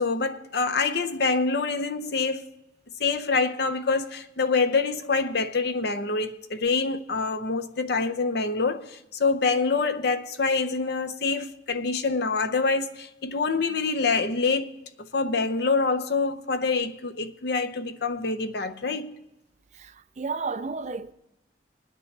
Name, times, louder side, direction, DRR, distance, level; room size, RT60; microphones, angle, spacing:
voice 1, 0.0-2.4 3.0-14.7 15.0-19.2, left 4 dB, 55° left, 0.7 m, -26 dB
voice 2, 19.7-21.1, right 4 dB, 35° right, 0.5 m, -32 dB
19.5 x 9.6 x 3.3 m
head